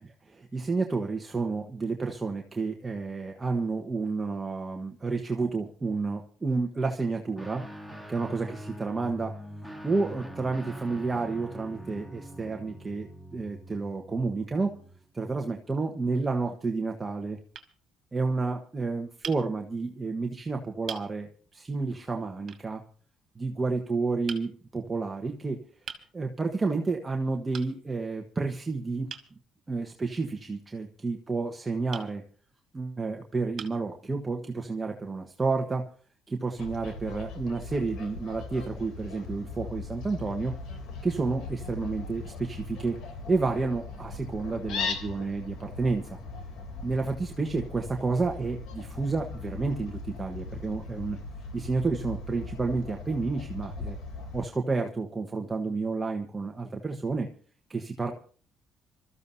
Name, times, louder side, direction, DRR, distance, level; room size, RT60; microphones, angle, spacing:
voice 1, 0.0-7.6 8.1-9.3 9.8-13.1 13.3-14.7 15.1-17.4 18.1-22.8 23.4-25.6 26.1-29.1 29.7-32.2 32.7-35.9 36.3-40.5 41.0-43.0 43.3-46.2 46.8-51.2 51.5-54.0 54.3-57.3 57.7-58.1, right 3 dB, 20° right, 3 dB, 1.3 m, -30 dB
Guitar, 7.4-15.0, equal, 5° left, 1.6 m, -43 dB
sound 1, 15.8-16.4 17.1-17.2 17.5-17.7 19.2-19.4 20.3-20.4 20.9-21.1 22.5-22.7 24.3-24.5 25.9-26.1 27.5-27.7 29.1-29.3 31.9-32.1 32.9-33.0 33.6-33.9, right 7 dB, 50° right, 2.2 m, -41 dB
Fowl, 36.6-54.5, left 4 dB, 75° left, 3.3 m, -39 dB
26.5 x 14.0 x 2.8 m, 0.42 s
cardioid pair, 125°, 0 cm